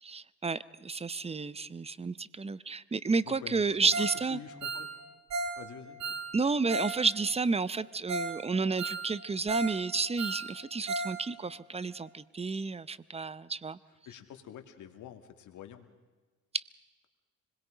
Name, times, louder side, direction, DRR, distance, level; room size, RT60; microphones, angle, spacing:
voice 1, 0.0-4.4 6.3-13.8 16.5-16.6, right 4 dB, 20° right, 18 dB, 0.8 m, -31 dB
voice 2, 3.2-4.9 5.6-6.0 14.1-15.9, left 10 dB, 80° left, 6 dB, 2.5 m, -47 dB
Ringtone, 3.9-4.2 4.5-7.0 7.2-7.3 7.8-7.9 8.1-8.4 8.6-9.8 10.0-11.2 11.4-11.5 12.0-12.1, right 3 dB, 65° right, 3.4 m, -35 dB
26.0 x 21.0 x 5.1 m, 1.3 s
cardioid pair, 90°, 30 cm